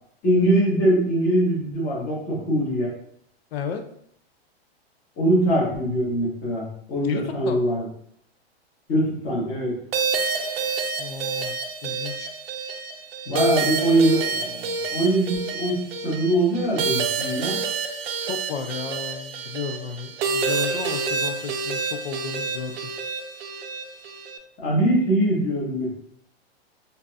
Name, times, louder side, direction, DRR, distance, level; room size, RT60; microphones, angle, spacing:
voice 1, 0.2-2.9 5.2-7.9 8.9-9.8 13.3-17.6 24.6-26.0, right 1 dB, 25° left, -5 dB, 1.2 m, -22 dB
voice 2, 3.5-3.8 7.0-7.7 11.0-11.5 11.8-12.3 18.2-22.9, left 6 dB, 70° left, 7 dB, 0.6 m, -33 dB
sound 1, 9.9-24.4, right 4 dB, 65° right, 0.6 m, -28 dB
3.8 x 2.7 x 2.4 m, 0.69 s
supercardioid pair, 160°, 32 cm